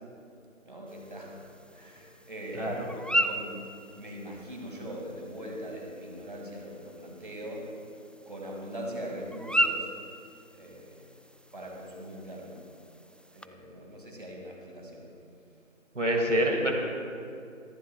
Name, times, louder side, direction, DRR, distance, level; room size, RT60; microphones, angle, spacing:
voice 1, 0.7-1.4 1.7-3.6 3.9-7.7 8.3-9.9 10.5-11.1 11.5-12.6 13.3-15.1, equal, 40° right, -1 dB, 2.4 m, -41 dB
sound 1, 0.9-13.5, right 1 dB, 5° left, 0.3 m, -36 dB
voice 2, 2.5-2.9 16.0-16.7, equal, 65° right, 0 dB, 2.2 m, -26 dB
24.0 x 11.5 x 2.4 m, 2.5 s
figure-of-eight pair, 180°, 40 cm